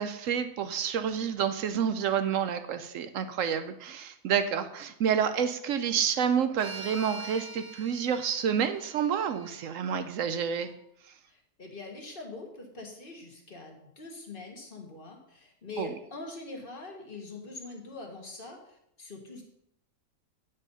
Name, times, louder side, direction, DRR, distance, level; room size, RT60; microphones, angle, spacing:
voice 1, 0.0-10.7 15.8-15.9, right 8 dB, 65° right, 10 dB, 0.8 m, -29 dB
sound 1, 6.6-10.8, right 3 dB, 50° right, 1.0 m, -45 dB
voice 2, 11.3-19.4, left 3 dB, 35° left, 1 dB, 1.6 m, -43 dB
9.7 x 5.4 x 5.5 m, 0.78 s
omnidirectional pair, 1.7 m